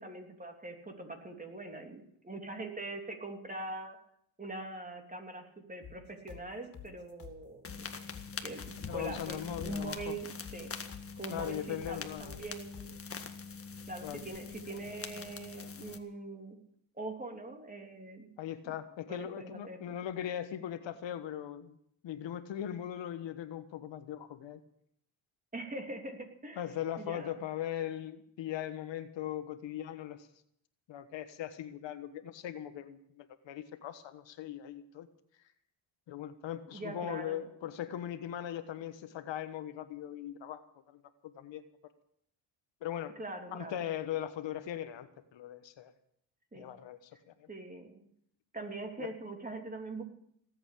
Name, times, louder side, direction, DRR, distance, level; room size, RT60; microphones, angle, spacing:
voice 1, 0.0-4.0 4.4-7.9 8.4-10.7 11.2-12.9 13.9-16.6 16.9-18.3 19.1-19.8 25.5-26.6 27.0-27.4 36.7-37.5 43.2-43.8 46.5-46.8 47.5-48.1 48.5-50.0, right 2 dB, 15° right, 3 dB, 3.2 m, -43 dB
sound 1, 5.8-13.0, left 8 dB, 45° left, 3.2 m, -51 dB
sound 2, 7.6-16.0, left 5 dB, 30° left, 1.7 m, -44 dB
voice 2, 8.9-10.2 11.3-12.4 14.0-14.2 18.4-21.8 22.0-24.6 26.6-30.3 30.9-35.1 36.1-40.6 40.9-41.6 42.8-43.2 43.5-45.9 46.5-47.5 49.0-49.1, left 11 dB, 65° left, 10 dB, 1.4 m, -39 dB
18.0 x 8.3 x 8.6 m, 0.71 s
cardioid pair, 90°, 48 cm